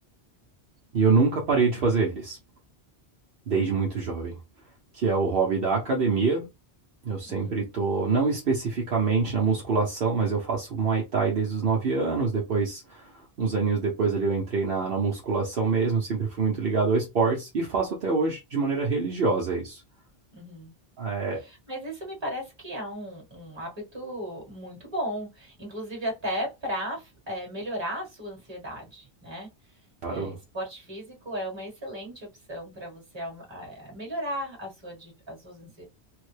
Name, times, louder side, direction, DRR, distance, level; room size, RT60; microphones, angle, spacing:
voice 1, 0.9-2.4 3.5-4.4 4.9-6.5 7.0-19.8 21.0-21.4 30.0-30.3, right 4 dB, 60° right, 1.0 m, -25 dB
voice 2, 7.3-7.7 20.3-20.7 21.4-29.8 30.1-35.8, equal, 25° right, 1.4 m, -36 dB
3.4 x 2.1 x 3.2 m
omnidirectional pair, 1.1 m